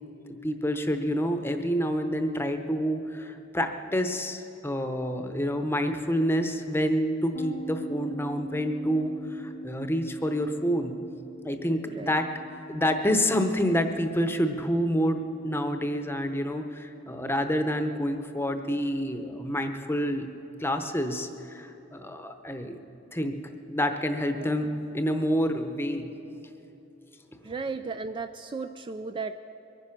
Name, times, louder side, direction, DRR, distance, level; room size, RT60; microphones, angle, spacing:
voice 1, 0.4-11.0 11.4-12.3 12.7-20.3 20.6-22.8 23.1-23.4 23.7-24.7 24.9-26.1, equal, 10° left, 7 dB, 0.8 m, -28 dB
sound 1, 7.3-16.8, right 3 dB, 55° left, 0.7 m, -44 dB
voice 2, 11.9-12.2 24.4-24.6 27.4-29.4, right 4 dB, 25° right, 9 dB, 0.3 m, -35 dB
23.0 x 9.8 x 5.9 m, 2.9 s
head